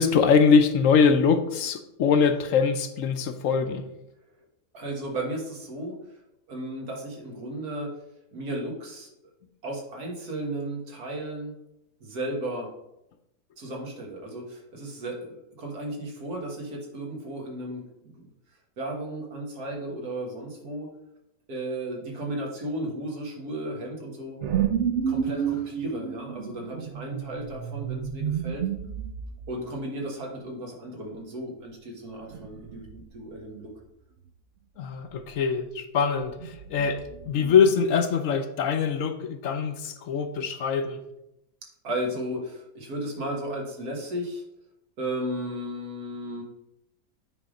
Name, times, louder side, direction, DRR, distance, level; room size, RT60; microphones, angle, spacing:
voice 1, 0.0-3.9 34.8-41.0, left 6 dB, 65° left, 8 dB, 0.9 m, -23 dB
voice 2, 4.7-6.0 6.5-7.9 8.3-9.1 9.6-11.6 12.0-12.7 13.6-15.3 15.6-18.3 18.8-20.9 21.5-24.4 25.1-28.6 29.5-33.7 41.8-44.4 45.0-46.4, right 1 dB, 80° right, 0 dB, 2.1 m, -34 dB
sound 1, 24.4-29.6 32.3-33.0 33.3-33.7 36.2-37.6, right 9 dB, 60° right, 0.8 m, -31 dB
9.2 x 3.6 x 5.1 m, 0.85 s
omnidirectional pair, 1.6 m